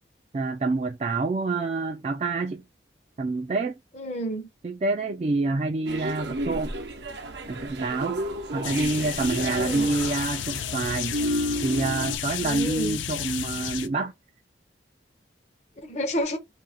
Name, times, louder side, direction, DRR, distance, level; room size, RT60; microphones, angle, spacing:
voice 1, 0.3-2.6 3.2-3.7 4.6-6.7 7.5-8.2 8.5-11.1 11.6-14.1, right 3 dB, 35° right, 0.3 m, -27 dB
voice 2, 4.0-4.5 9.6-9.9 12.4-13.0 15.8-16.4, right 1 dB, 35° left, 0.6 m, -30 dB
sound 1, 5.9-12.2, right 1 dB, 70° right, 0.6 m, -32 dB
sound 2, 8.6-13.9, left 10 dB, 90° left, 0.4 m, -33 dB
2.7 x 2.5 x 4.2 m
head